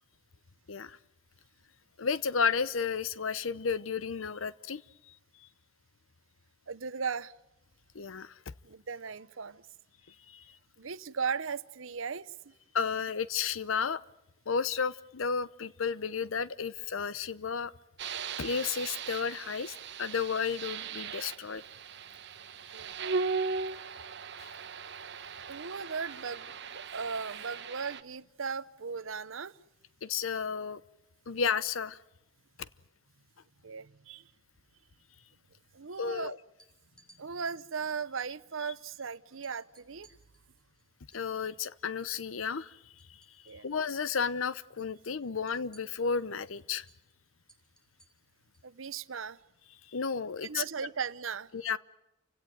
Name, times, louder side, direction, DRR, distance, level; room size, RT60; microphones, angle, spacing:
voice 1, 2.0-4.8 7.9-8.3 10.3-10.4 12.7-14.0 14.5-17.7 18.4-21.6 24.4-24.5 30.0-30.8 31.3-32.0 32.6-32.7 36.0-36.4 41.1-42.8 43.6-46.9 49.9-50.6 51.5-51.8, left 6 dB, 90° left, 0.8 m, -32 dB
voice 2, 6.7-7.3 8.6-9.6 10.8-12.5 22.7-23.0 25.5-29.6 33.6-34.3 35.7-36.3 37.2-40.1 43.5-43.7 48.6-49.4 50.4-51.5, right 5 dB, 85° right, 0.8 m, -37 dB
sound 1, 18.0-28.0, right 5 dB, 60° right, 1.1 m, -38 dB
sound 2, 36.5-37.2 38.6-38.7 39.0-39.1 39.4-42.2 42.5-43.7 43.9-44.3 44.6-48.7, right 1 dB, 5° left, 3.0 m, -64 dB
29.0 x 17.0 x 9.2 m
head